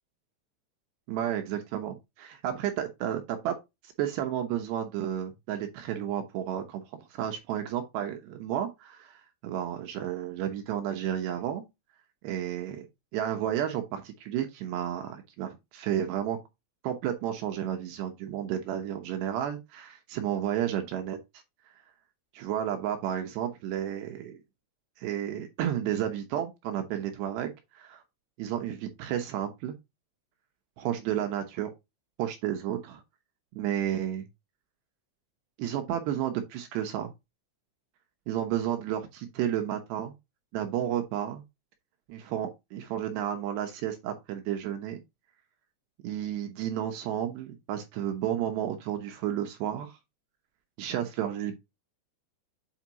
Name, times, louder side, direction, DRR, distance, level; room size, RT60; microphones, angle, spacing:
voice 1, 1.1-3.6 4.0-6.8 7.1-11.6 12.2-12.9 13.1-16.4 16.8-21.2 22.3-24.4 25.0-28.0 28.4-29.8 30.8-31.7 32.2-33.0 33.6-34.3 35.6-37.1 38.3-40.1 40.5-41.4 42.1-45.0 46.0-50.0 50.8-51.6, right 10 dB, 75° right, 2.6 m, -32 dB
8.3 x 5.0 x 2.9 m
omnidirectional pair, 5.8 m